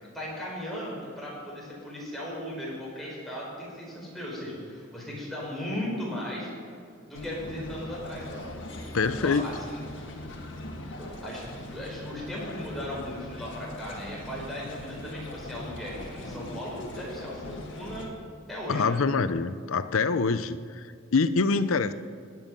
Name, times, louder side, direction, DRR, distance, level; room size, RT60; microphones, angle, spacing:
voice 1, 0.0-6.5 7.0-8.3 9.2-9.8 11.0-18.1 18.5-19.0, left 1 dB, ahead, -5 dB, 4.6 m, -37 dB
sound 1, 7.1-18.1, left 1 dB, 60° left, 1.7 m, -40 dB
voice 2, 8.9-9.6 18.7-21.9, left 4 dB, 75° left, 13 dB, 0.6 m, -25 dB
18.0 x 11.0 x 5.4 m, 2.2 s
head